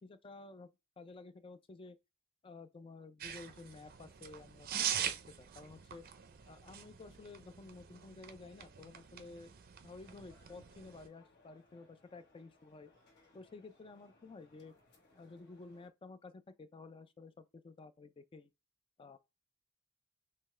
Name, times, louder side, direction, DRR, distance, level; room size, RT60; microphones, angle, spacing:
voice 1, 0.0-2.0 2.4-4.7 5.0-6.0 6.5-9.5 9.8-12.9 13.3-14.7 15.1-18.5 19.0-19.2, left 3 dB, 25° left, 0.4 m, -53 dB
sound 1, 3.2-11.1, right 9 dB, 45° right, 0.5 m, -43 dB
sound 2, 10.0-15.9, left 3 dB, 50° left, 1.2 m, -68 dB
5.6 x 2.2 x 3.2 m
head